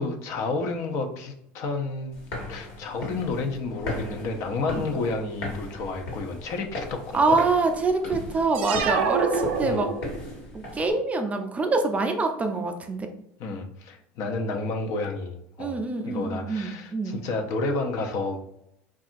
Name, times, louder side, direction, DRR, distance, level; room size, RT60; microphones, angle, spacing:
voice 1, 0.0-2.2 2.5-7.4 9.6-9.8 13.4-15.8 16.0-18.4, left 3 dB, 55° left, 4 dB, 0.5 m, -30 dB
sound 1, 2.1-10.9, left 2 dB, 75° left, 1.2 m, -37 dB
voice 2, 7.1-9.9 10.5-13.1 15.6-17.2, right 3 dB, 20° right, 5 dB, 0.4 m, -25 dB
sound 2, 8.5-10.4, right 6 dB, 85° right, 0.4 m, -27 dB
2.7 x 2.3 x 2.5 m, 0.74 s
supercardioid pair, 100°, 6 cm